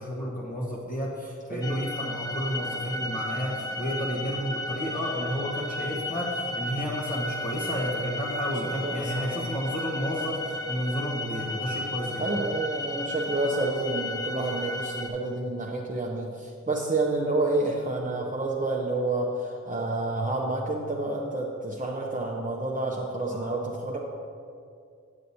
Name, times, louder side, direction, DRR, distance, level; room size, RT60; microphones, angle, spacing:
voice 1, 0.0-12.3 23.3-23.6, equal, 30° left, -7 dB, 1.2 m, -31 dB
sound 1, 1.6-15.1, left 1 dB, 15° left, 0.6 m, -34 dB
voice 2, 8.8-9.5 12.2-24.0, right 2 dB, 30° right, -4 dB, 0.7 m, -29 dB
8.9 x 8.1 x 2.7 m, 2.4 s
wide cardioid pair, 40°, 29 cm